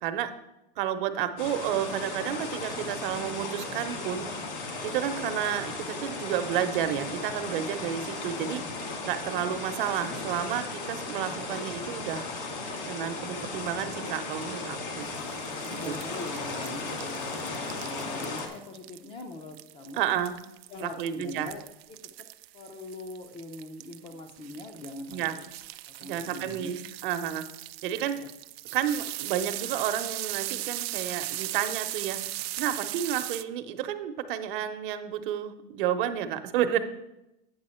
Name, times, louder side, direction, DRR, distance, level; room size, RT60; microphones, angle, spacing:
voice 1, 0.8-4.3 4.8-8.6 9.0-12.3 12.9-15.1 15.9-16.0 19.9-20.4 20.8-21.5 25.1-25.3 26.0-26.8 27.0-27.4 27.8-28.2 28.7-32.2 32.6-36.8, right 10 dB, 60° right, 9 dB, 0.8 m, -31 dB
sound 1, 1.4-18.5, left 3 dB, 70° left, 2.0 m, -36 dB
sound 2, 15.0-33.4, right 16 dB, 85° right, 0.5 m, -38 dB
voice 2, 15.6-20.1 20.7-21.6 21.9-22.1 22.5-25.4 25.9-26.7 28.1-28.3, left 2 dB, 20° left, 5 dB, 0.4 m, -42 dB
8.8 x 6.8 x 4.3 m, 0.89 s
supercardioid pair, 160°, 30 cm